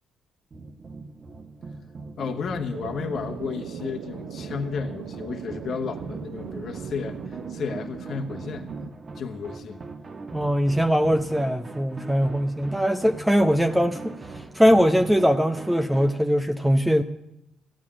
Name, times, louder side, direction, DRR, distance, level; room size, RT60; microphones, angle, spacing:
sound 1, 0.5-16.2, right 3 dB, 35° right, 1.4 m, -41 dB
voice 1, 2.2-8.7 9.2-9.8, left 5 dB, 60° left, 3 dB, 1.3 m, -32 dB
sound 2, 2.7-8.9, right 9 dB, 80° right, 0.7 m, -39 dB
voice 2, 10.3-14.1 14.5-17.0, equal, 5° right, 7 dB, 0.8 m, -21 dB
14.0 x 9.4 x 8.8 m, 0.85 s
cardioid pair, 90°, 0 cm